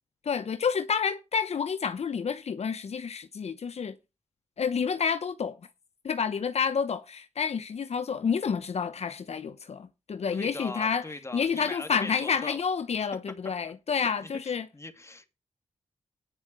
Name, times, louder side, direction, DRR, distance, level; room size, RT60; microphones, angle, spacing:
voice 1, 0.2-3.9 4.6-5.6 6.0-11.0 11.3-14.7, left 6 dB, 70° left, 0.8 m, -29 dB
voice 2, 10.3-12.6 13.6-13.7 14.0-15.3, left 2 dB, 25° left, 2.3 m, -41 dB
10.0 x 6.6 x 6.7 m
cardioid pair, 50°, 12 cm